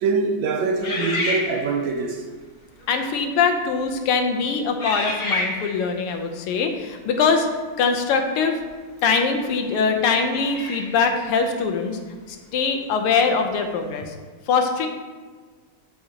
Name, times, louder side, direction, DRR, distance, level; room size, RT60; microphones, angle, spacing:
voice 1, 0.0-2.3, right 4 dB, 75° right, 1.1 m, -24 dB
sound 1, 0.8-2.0 2.8-3.0 3.7-4.0 4.8-5.9 8.6-8.7 10.2-11.1, left 1 dB, 40° left, 0.9 m, -28 dB
voice 2, 2.9-7.5 7.8-8.6 9.0-12.0 12.3-14.1 14.5-14.9, left 5 dB, 85° left, 1.7 m, -22 dB
11.5 x 4.5 x 2.8 m
omnidirectional pair, 2.4 m